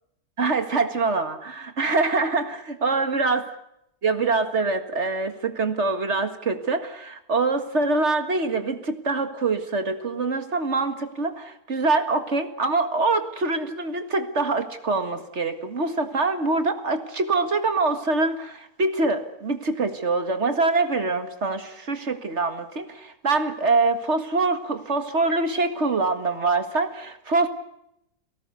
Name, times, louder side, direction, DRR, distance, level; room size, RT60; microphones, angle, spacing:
voice 1, 0.4-3.4 4.0-27.5, right 3 dB, 50° right, 8 dB, 2.1 m, -24 dB
29.0 x 18.5 x 6.9 m, 0.79 s
omnidirectional pair, 1.6 m